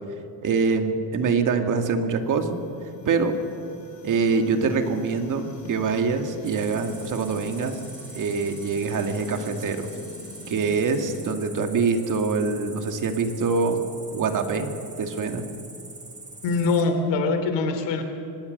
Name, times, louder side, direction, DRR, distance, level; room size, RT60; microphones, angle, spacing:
voice 1, 0.4-2.6 3.1-3.3 4.0-7.8 8.1-9.9 10.5-13.8 14.1-15.5, right 4 dB, 40° right, 6 dB, 2.1 m, -24 dB
sound 1, 1.5-11.2, left 3 dB, 40° left, 4.2 m, -45 dB
Cricket, 6.4-16.8, right 3 dB, 15° right, 3.0 m, -43 dB
voice 2, 16.4-18.0, left 3 dB, 65° left, 7 dB, 3.2 m, -23 dB
25.0 x 18.5 x 6.7 m, 2.6 s
cardioid pair, 120°, 45 cm